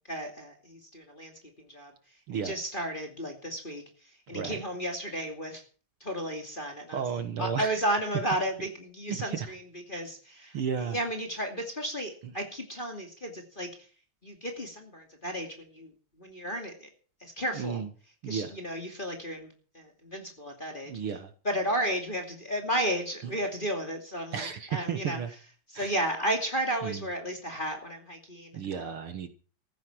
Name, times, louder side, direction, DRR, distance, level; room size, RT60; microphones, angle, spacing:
voice 1, 0.1-1.9 2.3-5.6 6.0-7.0 7.4-9.6 9.9-10.6 10.9-13.7 14.2-15.9 16.2-16.9 17.2-17.8 18.3-20.9 21.4-25.2 25.7-28.9, right 1 dB, 20° left, 3 dB, 2.3 m, -33 dB
voice 2, 4.3-4.6 6.9-7.8 9.1-9.5 10.5-11.0 12.2-12.3 17.5-17.9 18.2-18.5 20.9-21.3 23.2-23.3 24.3-25.3 25.7-25.9 26.8-27.0 28.5-29.3, right 7 dB, 55° right, 9 dB, 1.9 m, -33 dB
14.5 x 12.0 x 6.1 m, 0.40 s
omnidirectional pair, 3.4 m